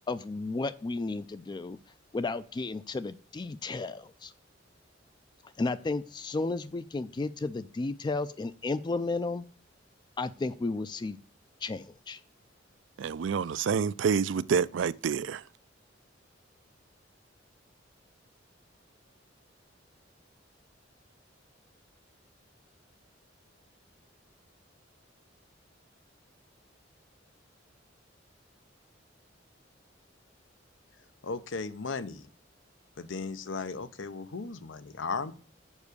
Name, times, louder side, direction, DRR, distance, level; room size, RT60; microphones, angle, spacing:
voice 1, 0.1-1.8 2.1-4.3 5.4-9.4 10.2-11.2 11.6-12.2, left 3 dB, 25° left, 0.3 m, -33 dB
voice 2, 13.0-15.4, right 6 dB, 75° right, 0.4 m, -28 dB
voice 3, 31.2-32.3 33.0-35.3, left 4 dB, 85° left, 0.7 m, -36 dB
7.2 x 4.7 x 6.7 m
head